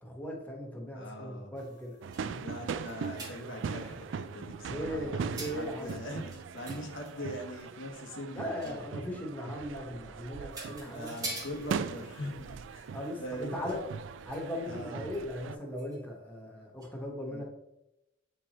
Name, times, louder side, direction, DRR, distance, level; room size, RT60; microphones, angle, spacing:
voice 1, 0.0-2.5 4.7-6.0 8.3-11.1 12.9-13.8 14.2-17.4, equal, 10° left, -1 dB, 1.2 m, -38 dB
voice 2, 0.9-1.6 2.4-8.8 10.8-12.9 13.2-13.8 14.6-15.0 17.3-17.4, equal, 90° left, 2 dB, 1.3 m, -42 dB
sound 1, 1.5-4.5 5.3-7.7 8.6-9.0 10.0-10.1 10.5-14.7 15.1-15.3 15.8-16.0 16.8-16.9, right 2 dB, 20° right, 1.2 m, -47 dB
sound 2, 2.0-15.6, right 6 dB, 75° right, 0.3 m, -40 dB
7.5 x 4.4 x 3.0 m, 0.89 s
head